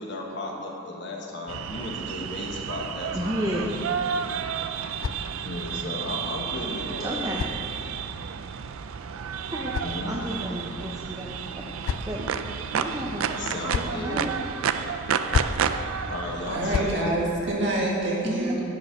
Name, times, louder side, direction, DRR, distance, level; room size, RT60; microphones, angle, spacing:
voice 1, 0.0-3.7 5.4-7.3 9.8-10.1 13.4-14.2 16.1-17.2, left 2 dB, 55° left, 0 dB, 1.2 m, -35 dB
sound 1, 1.5-16.9, right 7 dB, 80° right, 0.4 m, -31 dB
voice 2, 3.1-3.7 7.0-7.4 9.5-9.7 10.0-11.7 12.1-12.3 12.7-13.3 13.8-14.3 18.2-18.6, equal, 15° right, -3 dB, 0.7 m, -31 dB
sound 2, 4.1-5.8 6.8-8.2 9.2-10.5 11.3-12.4 13.3-14.1 15.1-15.7 16.4-17.0, left 5 dB, 75° left, 0.3 m, -34 dB
voice 3, 16.5-18.6, right 1 dB, 55° right, -4 dB, 1.9 m, -26 dB
10.5 x 5.5 x 6.4 m, 2.7 s
head